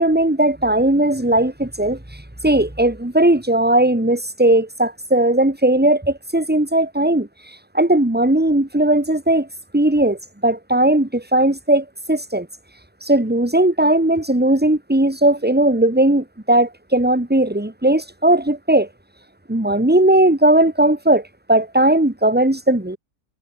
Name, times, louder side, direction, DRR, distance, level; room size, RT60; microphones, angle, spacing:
voice 1, 0.0-2.0 2.4-7.3 7.7-9.5 9.7-12.5 13.0-18.9 19.5-23.0, right 1 dB, 5° right, 2.0 m, -17 dB
omnidirectional pair, 1.6 m